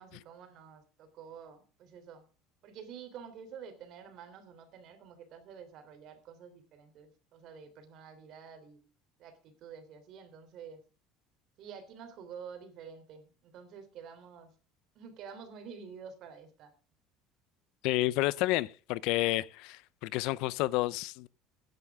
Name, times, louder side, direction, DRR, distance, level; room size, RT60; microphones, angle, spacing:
voice 1, 0.0-2.2 2.6-8.8 9.2-10.8 11.6-14.5 14.9-16.7, right 7 dB, 50° right, 3.3 m, -49 dB
voice 2, 17.8-21.3, left 18 dB, 70° left, 0.7 m, -30 dB
15.5 x 11.0 x 3.6 m
cardioid pair, 145°, 0 cm